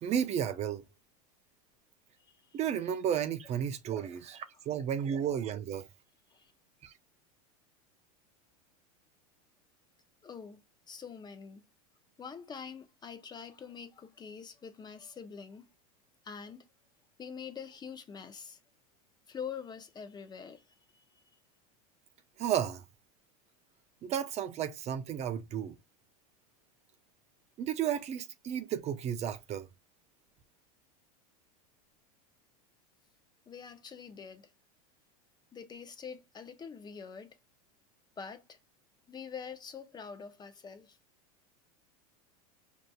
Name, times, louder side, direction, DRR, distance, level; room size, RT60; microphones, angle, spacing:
voice 1, 0.0-0.8 2.5-5.9 6.8-6.9 22.4-22.8 24.0-25.7 27.6-29.7, right 9 dB, 35° right, 0.6 m, -33 dB
voice 2, 2.3-2.6 4.0-4.2 5.1-5.2 6.3-6.5 10.2-11.6 12.2-15.7 16.2-16.6 17.2-18.6 19.3-20.6 20.9-21.0 33.5-34.5 35.5-37.4 38.2-38.6 39.1-41.0, left 6 dB, 20° left, 0.7 m, -45 dB
5.0 x 2.9 x 2.3 m
hypercardioid pair, 110°, 19 cm